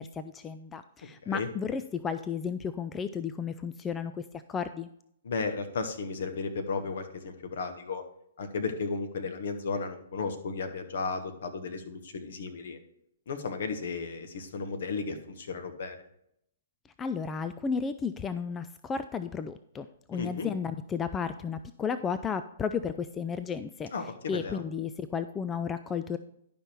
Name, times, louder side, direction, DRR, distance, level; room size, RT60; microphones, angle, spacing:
voice 1, 0.0-4.9 17.0-23.9 24.3-26.2, left 6 dB, 15° left, 12 dB, 0.3 m, -33 dB
voice 2, 5.2-8.0 8.4-12.8 13.3-16.0 20.1-20.5 23.9-24.6, left 4 dB, 60° left, 7 dB, 1.3 m, -34 dB
11.0 x 5.4 x 4.5 m, 0.75 s
hypercardioid pair, 125°, 0 cm